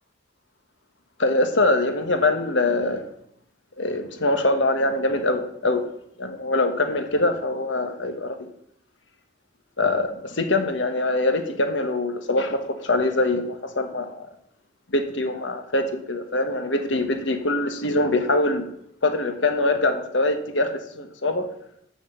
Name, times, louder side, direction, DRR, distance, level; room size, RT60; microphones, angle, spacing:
voice 1, 1.2-3.1 3.8-5.8 6.2-8.5 9.8-14.2 14.9-18.6 19.0-21.5, left 2 dB, 75° left, 7 dB, 1.3 m, -23 dB
7.5 x 6.4 x 8.0 m, 0.72 s
head